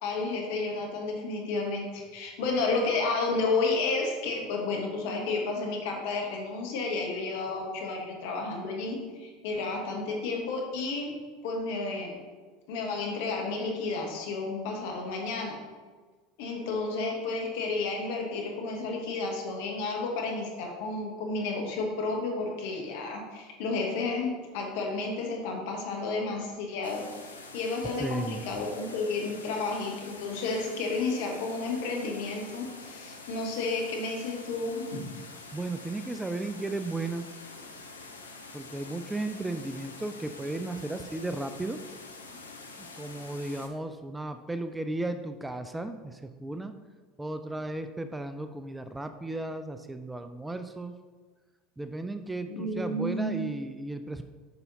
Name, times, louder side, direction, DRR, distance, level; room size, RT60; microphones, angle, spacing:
voice 1, 0.0-11.1 11.4-12.2 12.7-15.6 16.4-27.0 27.5-35.1 42.3-42.4 52.5-53.5, left 3 dB, 60° left, 1 dB, 1.3 m, -31 dB
sound 1, 26.8-43.7, left 3 dB, 80° left, 0.6 m, -46 dB
voice 2, 28.0-28.5 35.5-37.3 38.5-41.8 42.8-46.7 47.2-50.9 51.8-54.2, right 2 dB, 10° right, 9 dB, 0.3 m, -35 dB
8.0 x 5.5 x 2.7 m, 1.4 s
figure-of-eight pair, 75°, 0 cm